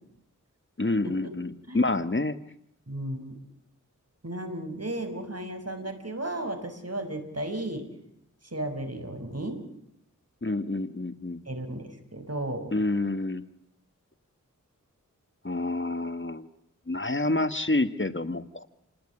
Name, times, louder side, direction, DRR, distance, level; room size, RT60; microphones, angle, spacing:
voice 1, 0.8-2.4 10.4-11.4 12.7-13.4 15.4-16.5 16.9-18.7, left 2 dB, 35° left, 11 dB, 1.6 m, -28 dB
voice 2, 2.9-3.3 4.2-7.9 8.5-9.6 11.5-12.7, right 1 dB, 50° right, 6 dB, 6.1 m, -34 dB
29.0 x 20.0 x 9.8 m, 0.74 s
wide cardioid pair, 50°, 32 cm